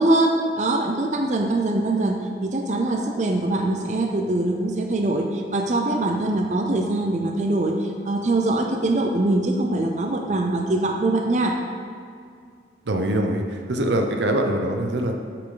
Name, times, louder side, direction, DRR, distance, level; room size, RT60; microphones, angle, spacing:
voice 1, 0.0-11.6, right 2 dB, 40° right, 2 dB, 0.5 m, -23 dB
voice 2, 12.8-15.2, right 1 dB, 85° right, 3 dB, 0.8 m, -23 dB
8.3 x 5.8 x 3.9 m, 2.2 s
head